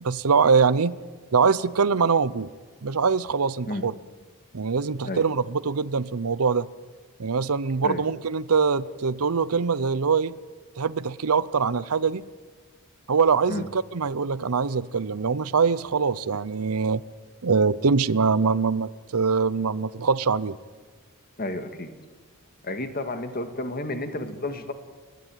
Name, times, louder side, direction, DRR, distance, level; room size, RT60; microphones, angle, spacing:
voice 1, 0.0-0.9 1.3-2.5 2.8-3.9 4.5-6.7 7.2-10.3 10.8-12.2 13.1-17.0 17.4-20.5, right 5 dB, 75° right, 18 dB, 0.7 m, -23 dB
voice 2, 21.4-21.9 22.6-24.7, left 2 dB, 40° left, 8 dB, 2.0 m, -31 dB
30.0 x 12.0 x 9.2 m, 1.5 s
head